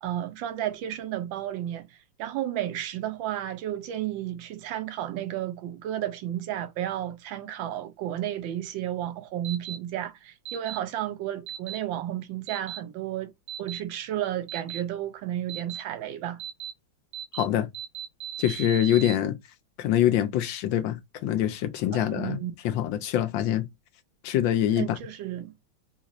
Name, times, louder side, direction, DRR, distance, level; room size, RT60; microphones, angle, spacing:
voice 1, 0.0-13.3 13.6-16.4 21.9-22.5 24.8-25.5, right 12 dB, 85° right, 1.4 m, -32 dB
sound 1, 9.4-9.8 10.5-10.8 11.5-11.8 12.5-12.8 13.5-13.8 14.5-14.8 15.5-15.8 16.4-16.7 17.1-17.4 17.7-19.1, right 11 dB, 60° right, 1.0 m, -36 dB
voice 2, 17.3-17.7 18.4-19.4 19.8-22.4 22.6-23.7 24.2-25.0, left 11 dB, 80° left, 1.4 m, -25 dB
4.2 x 2.5 x 2.9 m
omnidirectional pair, 2.0 m